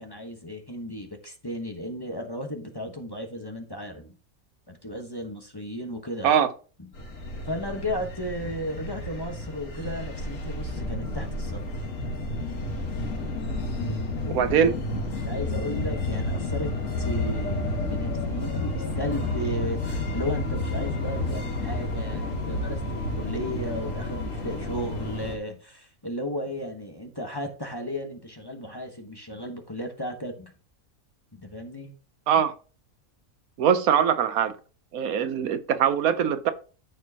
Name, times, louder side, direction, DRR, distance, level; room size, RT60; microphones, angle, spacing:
voice 1, 0.0-4.2 4.7-6.3 6.8-6.9 7.5-11.6 13.8-14.5 15.1-30.5 31.3-31.9, left 1 dB, 20° left, 1.1 m, -35 dB
sound 1, 6.9-25.4, left 2 dB, 65° left, 1.9 m, -30 dB
voice 2, 14.3-14.7 32.3-32.5 33.6-34.6 34.9-36.5, right 8 dB, 90° right, 1.2 m, -22 dB
13.0 x 4.5 x 2.8 m
omnidirectional pair, 1.5 m